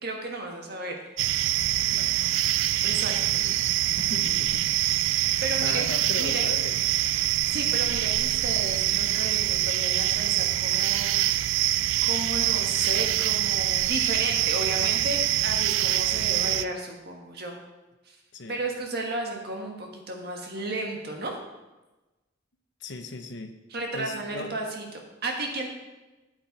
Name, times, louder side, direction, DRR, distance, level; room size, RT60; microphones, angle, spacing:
voice 1, 0.0-0.9 1.3-1.4 2.8-3.4 5.4-5.8 6.2-6.4 7.5-11.5 12.0-17.6 18.1-18.2 18.5-21.4 23.7-25.7, right 2 dB, 55° right, 2 dB, 1.5 m, -33 dB
sound 1, 1.2-16.6, right 13 dB, 75° right, 0.3 m, -25 dB
voice 2, 3.2-3.6 4.0-4.7 5.6-6.8 18.3-18.6 22.8-23.5 23.9-24.5, left 3 dB, 65° left, 6 dB, 0.9 m, -37 dB
8.1 x 8.0 x 4.1 m, 1.1 s
head